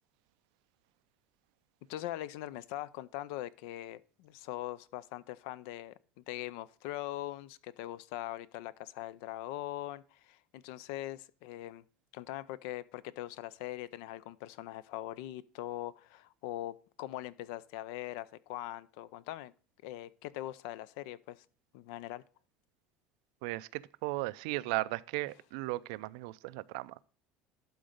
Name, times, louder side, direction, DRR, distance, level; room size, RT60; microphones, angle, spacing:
voice 1, 1.9-11.8 12.1-19.5 19.8-21.4 21.7-22.2, left 14 dB, 80° left, 0.5 m, -42 dB
voice 2, 23.4-27.0, right 20 dB, 85° right, 0.4 m, -36 dB
11.5 x 3.9 x 5.1 m
cardioid pair, 150°, 4 cm